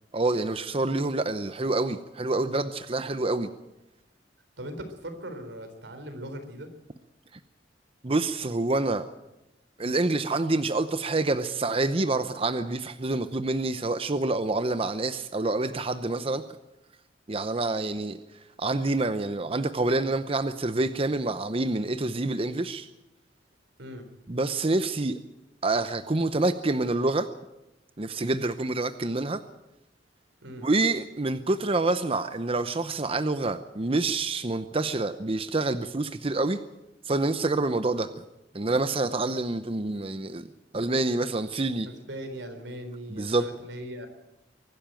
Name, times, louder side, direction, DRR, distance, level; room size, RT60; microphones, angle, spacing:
voice 1, 0.1-3.5 8.0-9.1 9.8-16.4 17.3-22.9 24.3-25.2 25.6-27.3 28.0-29.4 30.6-36.6 37.0-38.2 38.5-40.5 40.7-41.9 43.1-43.5, right 2 dB, 30° right, 10 dB, 0.8 m, -27 dB
voice 2, 4.6-6.7 23.8-24.1 30.4-30.7 41.8-44.1, right 1 dB, 85° right, 7 dB, 3.9 m, -39 dB
23.5 x 12.0 x 9.0 m, 0.96 s
head